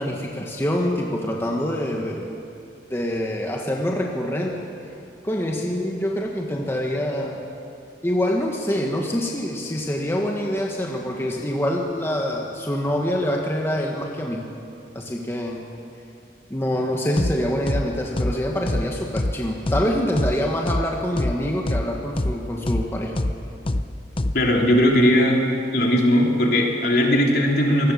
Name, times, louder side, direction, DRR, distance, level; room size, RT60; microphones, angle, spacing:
voice 1, 0.0-2.3 2.9-4.5 5.2-7.4 8.0-14.5 14.9-15.6 16.5-23.2, equal, 15° left, 0 dB, 1.5 m, -25 dB
sound 1, 17.2-17.3 17.7-17.8 18.2-18.3 18.7-18.8 19.2-19.3 19.7-19.8 20.2-20.3 20.7-20.8 21.2-21.3 21.7-21.8 22.2-22.3 22.7-22.8 23.2-23.3 23.7-23.8 24.2-24.3, left 1 dB, 30° left, 0.8 m, -23 dB
voice 2, 24.3-25.4 25.7-27.9, equal, 60° left, -1 dB, 3.8 m, -18 dB
25.0 x 20.0 x 7.2 m, 2.7 s
head